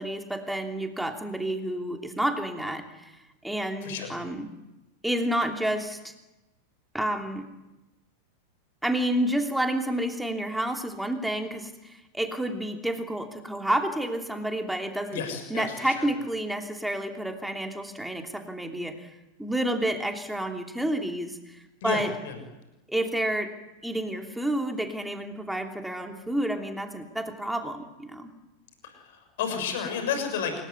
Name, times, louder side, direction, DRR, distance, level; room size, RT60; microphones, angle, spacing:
voice 1, 0.0-3.1 3.4-4.5 5.0-6.1 6.9-7.5 8.8-15.2 15.5-19.1 19.4-22.1 22.9-23.5 23.8-28.3, right 1 dB, 5° right, 4 dB, 3.0 m, -30 dB
voice 2, 3.8-4.2 15.1-16.1 21.8-22.4 28.8-30.5, left 6 dB, 55° left, 6 dB, 6.7 m, -32 dB
28.5 x 21.5 x 9.6 m, 1.0 s
figure-of-eight pair, 90°, 0 cm